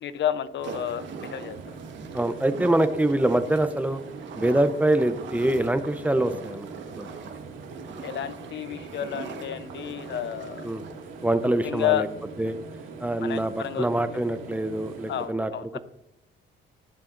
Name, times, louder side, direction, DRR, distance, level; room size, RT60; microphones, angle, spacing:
voice 1, 0.0-1.6 8.0-10.7 11.6-12.1 13.2-13.9 15.1-15.8, left 11 dB, 65° left, 13 dB, 0.7 m, -30 dB
sound 1, 0.6-11.6, right 5 dB, 70° right, 1.3 m, -42 dB
sound 2, 0.6-15.3, right 4 dB, 90° right, 2.1 m, -42 dB
voice 2, 2.1-4.0 4.4-6.7 7.0-7.1 10.6-10.8 11.2-12.1 12.4-12.6 13.0-15.8, right 1 dB, 10° right, 10 dB, 0.7 m, -24 dB
18.5 x 7.5 x 2.6 m, 0.86 s
cardioid pair, 90°, 20 cm